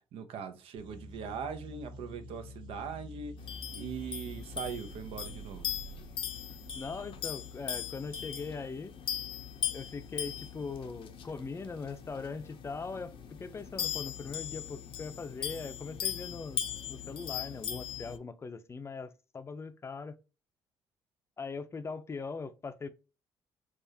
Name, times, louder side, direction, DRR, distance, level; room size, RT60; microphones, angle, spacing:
voice 1, 0.1-3.3 3.7-5.6, right 6 dB, 75° right, 0.7 m, -40 dB
sound 1, 0.8-7.3, right 1 dB, 50° right, 1.4 m, -48 dB
sound 2, 3.4-18.2, left 9 dB, 65° left, 0.7 m, -39 dB
voice 2, 6.7-8.9 9.7-16.6 16.9-20.1 21.4-22.9, left 4 dB, 25° left, 0.5 m, -40 dB
4.7 x 2.5 x 2.7 m
cardioid pair, 100°, 10 cm